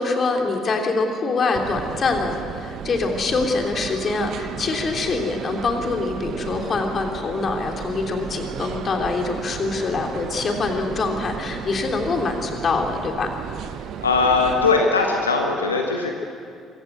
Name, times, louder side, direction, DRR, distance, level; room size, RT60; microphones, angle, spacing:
voice 1, 0.0-13.3, left 3 dB, 40° left, 3 dB, 3.2 m, -24 dB
sound 1, 1.5-14.8, right 8 dB, 55° right, 0.9 m, -34 dB
voice 2, 14.0-16.1, left 4 dB, 85° left, 2 dB, 1.3 m, -20 dB
24.0 x 16.0 x 8.2 m, 2.3 s
figure-of-eight pair, 50°, 0 cm